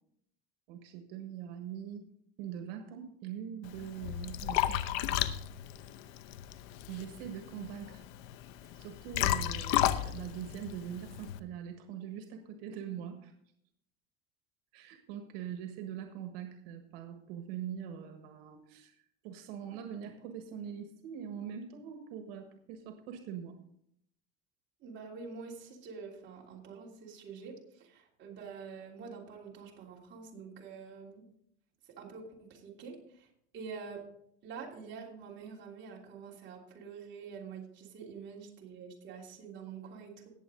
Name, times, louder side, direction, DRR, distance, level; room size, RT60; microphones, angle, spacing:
voice 1, 0.7-2.0 2.4-4.7 5.1-5.3 6.9-8.1 8.8-13.3 14.7-18.9 19.2-23.6, right 9 dB, 85° right, 6 dB, 1.6 m, -43 dB
Liquid, 3.6-11.4, left 13 dB, 80° left, 0.8 m, -33 dB
voice 2, 24.8-31.3 31.9-33.3 33.5-34.0 34.4-40.3, right 5 dB, 35° right, -2 dB, 3.1 m, -46 dB
17.5 x 7.5 x 3.9 m, 0.70 s
cardioid pair, 155°, 30 cm